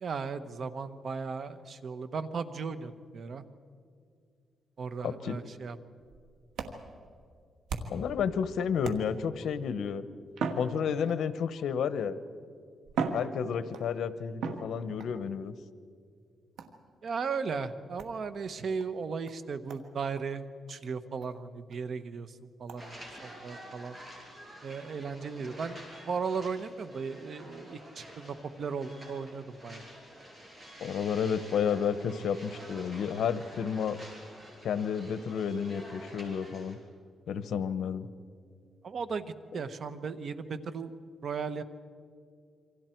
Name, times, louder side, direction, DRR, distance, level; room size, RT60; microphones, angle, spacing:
voice 1, 0.0-3.4 4.8-5.8 17.0-20.4 20.7-22.3 22.6-22.9 23.2-23.9 24.6-25.8 26.1-29.8 38.8-39.3 39.5-40.9 41.2-41.6, right 5 dB, 55° right, 11 dB, 1.1 m, -36 dB
voice 2, 5.0-5.4 7.9-10.0 10.6-12.2 13.1-15.5 30.8-34.0 34.6-36.8 37.3-38.1 39.5-39.6, left 7 dB, 80° left, 13 dB, 0.9 m, -31 dB
sound 1, 6.0-8.2 8.8-9.4 10.3-11.4 12.3-12.4 12.9-13.9 14.4-15.1 16.6-16.9 18.0-18.2 18.8-18.9 19.3-19.4 19.7-19.9 20.2-20.3 20.7-20.8 21.2-21.3 21.7-21.8 22.7-22.8, right 5 dB, 90° right, 1.7 m, -37 dB
sound 2, 22.8-36.7, equal, 20° right, 7.1 m, -49 dB
28.0 x 25.0 x 4.6 m, 2.3 s
cardioid pair, 110°, 0 cm